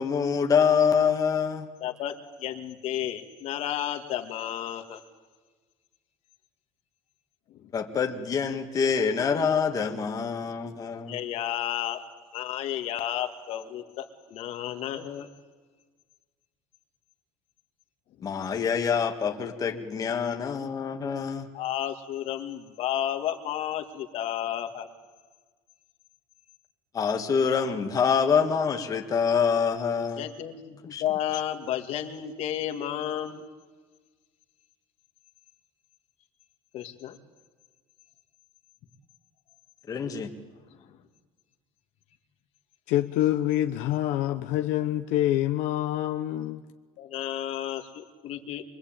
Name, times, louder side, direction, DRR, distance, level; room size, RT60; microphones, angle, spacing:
voice 1, 0.0-1.7 7.7-11.2 18.2-21.5 26.9-30.3 30.9-31.0 31.3-31.4 39.9-40.3, left 6 dB, 25° left, 2.0 m, -26 dB
voice 2, 1.8-2.1 2.4-5.0 7.5-7.7 11.1-12.0 12.3-15.3 18.2-18.5 21.5-24.9 30.2-33.4 36.7-37.2 40.7-41.0 47.0-48.6, left 11 dB, 55° left, 2.3 m, -32 dB
voice 3, 42.9-46.6, left 13 dB, 75° left, 1.1 m, -26 dB
24.0 x 23.0 x 9.0 m
cardioid pair, 145°, 13 cm